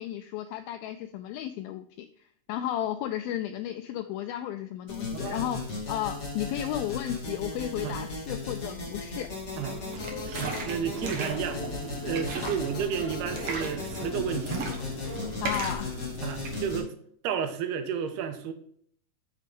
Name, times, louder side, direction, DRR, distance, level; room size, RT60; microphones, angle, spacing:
voice 1, 0.0-2.1 2.5-9.3 12.4-12.6 15.4-16.1, left 12 dB, 85° left, 8 dB, 2.1 m, -34 dB
sound 1, 4.9-16.8, left 3 dB, 30° left, 1.2 m, -36 dB
voice 2, 5.1-5.6 7.8-8.0 9.6-9.8 10.3-14.6 16.2-16.9 17.2-18.5, right 8 dB, 85° right, 7 dB, 2.8 m, -32 dB
sound 2, 9.6-15.6, left 3 dB, 55° left, 4.6 m, -43 dB
sound 3, 9.9-16.6, right 3 dB, 60° right, 1.5 m, -37 dB
8.1 x 6.5 x 3.6 m, 0.63 s
omnidirectional pair, 4.7 m